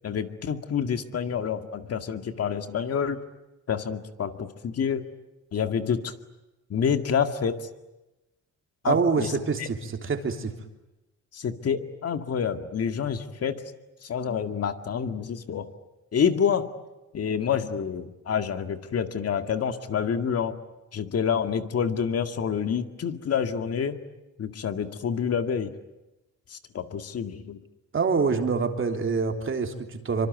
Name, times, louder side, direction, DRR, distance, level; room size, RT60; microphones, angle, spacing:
voice 1, 0.0-3.2 3.7-5.1 5.5-6.1 6.7-7.7 8.8-9.3 9.6-9.7 11.3-13.6 14.0-15.7 16.1-16.7 17.1-20.6 20.9-24.0 24.4-25.7 26.5-27.6, left 7 dB, 55° left, 8 dB, 2.1 m, -28 dB
voice 2, 8.9-10.5 27.9-30.3, right 5 dB, 40° right, 4 dB, 3.4 m, -26 dB
25.0 x 24.5 x 9.5 m, 0.99 s
cardioid pair, 90°, 30 cm